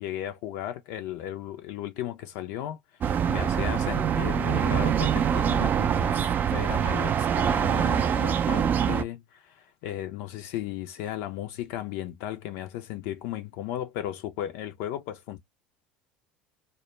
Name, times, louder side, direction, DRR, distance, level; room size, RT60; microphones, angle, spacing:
voice 1, 0.0-2.8 3.3-15.4, left 12 dB, 65° left, 0.4 m, -35 dB
sound 1, 3.0-9.0, right 8 dB, 40° right, 0.3 m, -24 dB
2.1 x 2.0 x 3.0 m
hypercardioid pair, 80°, 5 cm